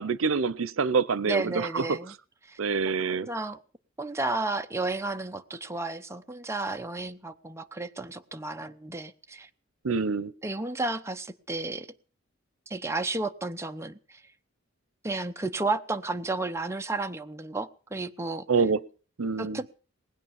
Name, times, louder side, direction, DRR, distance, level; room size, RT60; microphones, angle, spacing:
voice 1, 0.0-1.8 2.6-3.3 9.8-10.3 18.5-18.8 19.2-19.6, right 5 dB, 85° right, 0.7 m, -26 dB
voice 2, 1.2-2.1 2.5-2.6 2.8-3.6 4.0-9.5 10.4-11.9 12.7-14.2 15.0-18.5 19.4-19.7, right 3 dB, 15° right, 0.8 m, -32 dB
20.0 x 9.7 x 7.1 m
head